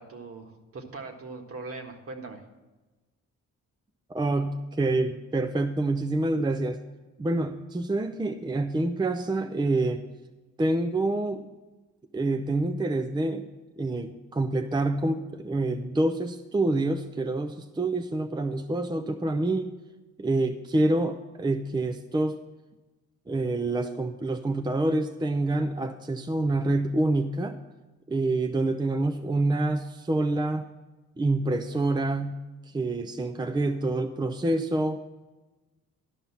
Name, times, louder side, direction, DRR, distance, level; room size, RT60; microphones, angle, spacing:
voice 1, 0.0-2.4, right 3 dB, 50° right, 4 dB, 1.6 m, -40 dB
voice 2, 4.1-6.8 7.2-10.0 10.6-11.4 12.1-13.4 13.8-19.7 20.2-22.4 23.3-27.6 28.1-30.7 31.2-32.4 32.7-35.0, right 2 dB, 15° right, 6 dB, 0.5 m, -27 dB
11.5 x 5.4 x 7.1 m, 1.1 s
cardioid pair, 90°, 30 cm